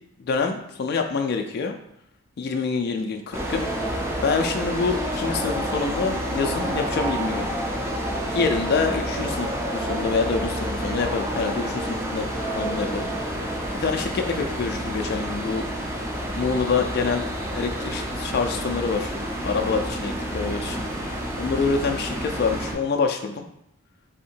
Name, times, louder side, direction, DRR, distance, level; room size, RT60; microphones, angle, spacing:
voice 1, 0.2-1.7 2.4-3.6 4.2-7.5 8.3-12.3 12.5-13.1 13.8-15.6 16.4-19.1 19.4-20.8 21.4-23.4, left 4 dB, 50° left, 4 dB, 0.3 m, -26 dB
sound 1, 3.3-22.7, equal, 10° right, 0.5 m, -29 dB
3.5 x 2.8 x 4.3 m, 0.77 s
head